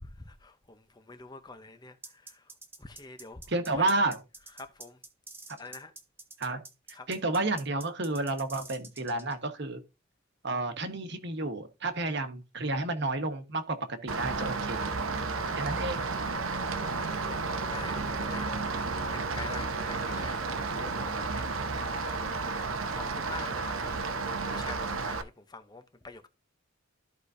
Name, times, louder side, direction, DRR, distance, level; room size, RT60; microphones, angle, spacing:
voice 1, 0.0-2.5 2.8-3.9 4.4-5.0 5.6-5.9 6.9-7.1 16.4-17.3 17.7-26.3, left 3 dB, 20° left, 0.7 m, -47 dB
sound 1, 2.0-9.3, right 3 dB, 10° right, 0.9 m, -47 dB
voice 2, 3.5-4.2 6.4-6.6 7.1-9.8 10.4-15.0 15.5-16.0, right 2 dB, 55° right, 1.3 m, -31 dB
Rain, 14.1-25.2, right 4 dB, 80° right, 1.0 m, -32 dB
13.5 x 4.9 x 2.6 m
head